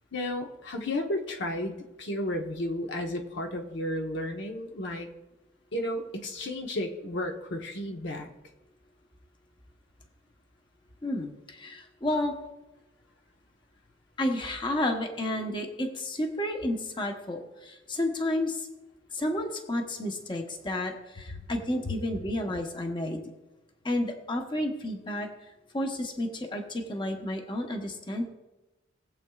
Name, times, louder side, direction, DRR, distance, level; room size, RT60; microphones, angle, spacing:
voice 1, 0.1-5.1 5.7-8.3 21.3-21.4 21.8-22.0, left 1 dB, 65° left, 3 dB, 1.1 m, -33 dB
voice 2, 11.0-12.4 14.2-18.7 19.1-23.2 23.8-25.3 25.7-28.2, left 1 dB, 25° left, 3 dB, 1.0 m, -31 dB
19.5 x 7.8 x 2.4 m, 1.0 s
head